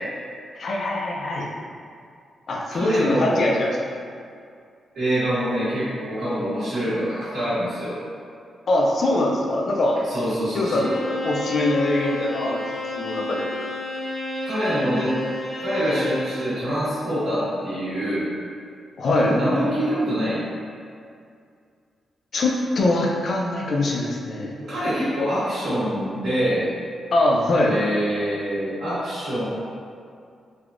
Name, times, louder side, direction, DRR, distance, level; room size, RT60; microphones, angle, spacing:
voice 1, 0.6-1.5 2.5-3.8 8.7-10.0 10.5-10.9 11.2-12.7 13.0-13.5 19.0-19.4 22.3-24.6 27.1-27.8, left 1 dB, 50° left, -2 dB, 0.4 m, -22 dB
voice 2, 2.7-3.5 4.9-8.0 10.1-11.0 14.4-15.1 15.6-18.3 19.2-20.4 24.6-26.7 27.6-29.4, equal, 85° right, -15 dB, 1.3 m, -25 dB
Bowed string instrument, 10.7-16.3, left 2 dB, 30° left, 0.9 m, -30 dB
3.3 x 2.2 x 2.4 m, 2.3 s
wide cardioid pair, 155°, 0 cm